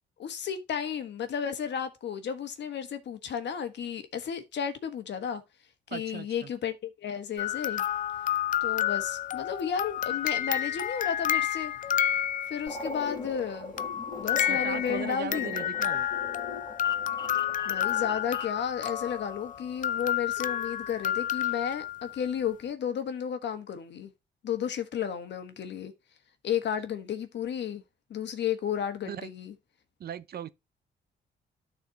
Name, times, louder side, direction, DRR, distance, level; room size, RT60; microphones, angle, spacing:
voice 1, 0.2-5.4 5.9-7.8 8.6-11.7 12.5-13.7 14.2-15.5 17.6-24.1 24.4-25.9 26.4-27.8 28.1-29.5, left 8 dB, 60° left, 1.5 m, -33 dB
voice 2, 5.9-6.5 14.4-16.1 29.1-29.3 30.0-30.5, right 9 dB, 55° right, 0.6 m, -38 dB
sound 1, 7.4-12.9 13.8-22.3, left 11 dB, 40° left, 0.5 m, -30 dB
sound 2, 12.7-18.6, left 2 dB, 20° left, 2.9 m, -40 dB
13.0 x 4.3 x 2.8 m
cardioid pair, 90°, 20 cm